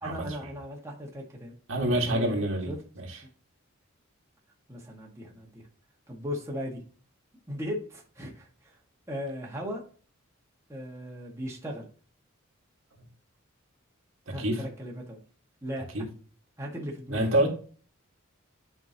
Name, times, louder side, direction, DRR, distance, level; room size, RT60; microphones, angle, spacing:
voice 1, 0.0-1.5 2.1-2.8 4.7-5.6 6.1-6.8 7.5-8.7 9.1-9.8 10.7-11.9 14.3-15.2 15.6-15.9 16.6-17.2, equal, 15° right, 1.7 m, -37 dB
voice 2, 1.7-3.2 14.3-14.6 15.9-16.0 17.1-17.5, right 1 dB, 70° right, 2.0 m, -27 dB
9.5 x 5.2 x 2.9 m
head